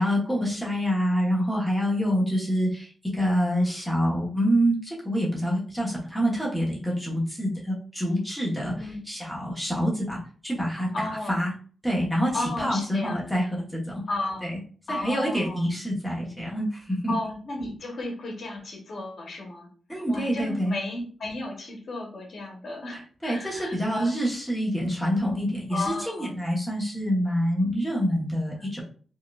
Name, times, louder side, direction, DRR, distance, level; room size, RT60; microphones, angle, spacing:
voice 1, 0.0-10.9 11.3-11.5 11.8-14.0 14.4-14.5 14.9-17.1 19.9-20.8 23.2-28.8, equal, 5° right, -5 dB, 1.0 m, -26 dB
voice 2, 10.9-11.4 12.3-13.3 14.1-14.5 14.9-15.6 17.1-24.1 25.7-26.3 28.6-28.7, left 2 dB, 55° left, 0 dB, 0.9 m, -34 dB
4.3 x 2.2 x 2.3 m, 0.43 s
wide cardioid pair, 155°, 0 cm